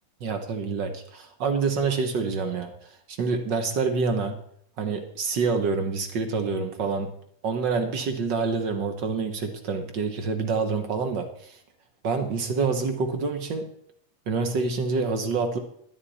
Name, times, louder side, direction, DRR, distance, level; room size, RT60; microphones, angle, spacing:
voice 1, 0.2-2.7 3.1-4.4 4.8-7.1 7.4-11.6 12.0-13.7 14.3-15.6, right 4 dB, 55° right, 6 dB, 1.3 m, -27 dB
12.5 x 11.0 x 4.2 m, 0.67 s
omnidirectional pair, 3.5 m